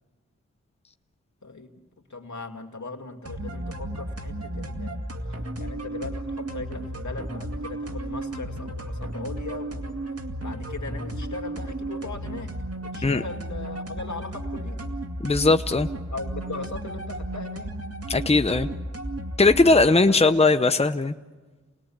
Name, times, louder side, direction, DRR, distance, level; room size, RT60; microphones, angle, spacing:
voice 1, 2.1-5.0 5.6-10.0 10.4-12.5 12.8-14.9 16.1-17.7 19.8-20.4, left 3 dB, 70° left, 4 dB, 2.5 m, -38 dB
sound 1, 3.3-19.9, right 1 dB, 55° right, 2.2 m, -34 dB
voice 2, 15.2-15.9 18.1-18.7 19.4-21.2, left 3 dB, 20° left, 9 dB, 0.8 m, -19 dB
29.0 x 20.0 x 8.7 m, 1.3 s
wide cardioid pair, 50°, 30 cm